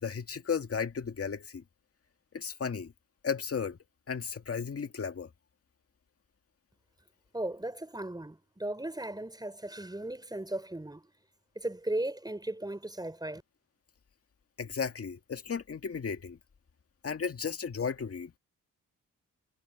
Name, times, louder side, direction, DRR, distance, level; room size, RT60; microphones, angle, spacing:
voice 1, 0.0-1.6 2.3-2.9 3.2-3.8 4.1-5.3 14.6-16.4 17.0-18.3, left 6 dB, 45° left, 2.0 m, -34 dB
voice 2, 7.3-11.1 11.5-13.4, right 1 dB, 10° right, 5.1 m, -36 dB
cardioid pair, 75°, 33 cm